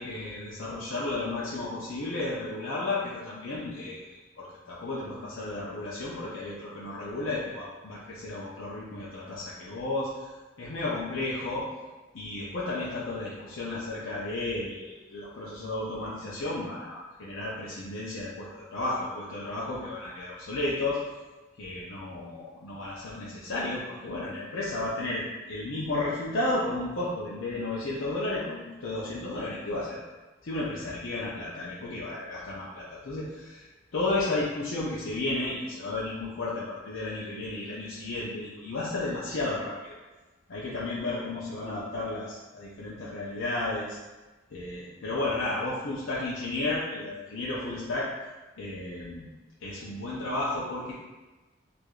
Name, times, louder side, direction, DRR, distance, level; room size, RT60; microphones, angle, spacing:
voice 1, 0.0-11.7 12.1-21.0 21.6-30.0 30.4-33.6 33.9-39.9 40.5-44.0 44.5-48.1 48.6-49.3 49.6-50.9, left 2 dB, 80° left, -7 dB, 0.6 m, -33 dB
4.5 x 2.5 x 2.4 m, 1.2 s
head